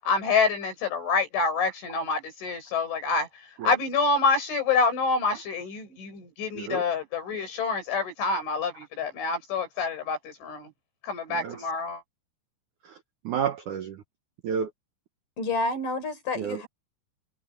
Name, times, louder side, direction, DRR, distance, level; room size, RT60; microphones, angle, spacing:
voice 1, 0.0-10.7 11.0-12.0, left 4 dB, 75° left, 9.9 m, -27 dB
voice 2, 11.3-11.8 12.8-14.0 14.4-14.7 16.3-16.6, right 7 dB, 85° right, 1.7 m, -32 dB
voice 3, 15.4-16.7, left 2 dB, 45° left, 6.5 m, -29 dB
omnidirectional pair, 5.4 m